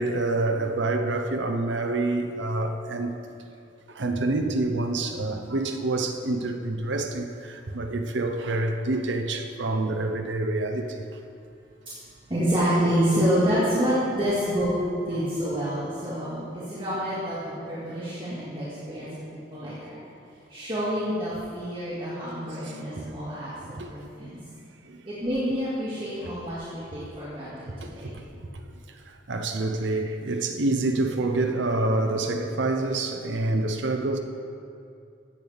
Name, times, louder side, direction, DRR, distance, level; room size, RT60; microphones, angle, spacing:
voice 1, 0.0-3.2 3.9-11.0 23.0-23.1 23.6-23.9 24.9-25.0 27.8-28.1 28.5-28.6 29.1-34.2, right 2 dB, 80° right, 4 dB, 0.7 m, -27 dB
voice 2, 12.3-14.7 15.1-19.1 19.5-20.0 20.5-24.4 25.0-28.2, equal, 30° right, -11 dB, 2.1 m, -28 dB
14.5 x 8.0 x 3.5 m, 2.5 s
head